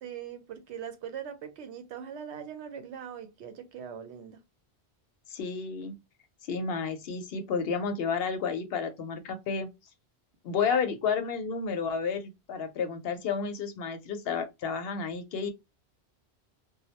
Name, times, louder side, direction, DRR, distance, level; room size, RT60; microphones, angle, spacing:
voice 1, 0.0-4.4 10.7-10.8, right 8 dB, 85° right, 0.9 m, -41 dB
voice 2, 5.3-5.9 6.5-9.7 10.4-15.5, left 5 dB, 65° left, 0.8 m, -31 dB
2.2 x 2.0 x 2.8 m
omnidirectional pair, 1.1 m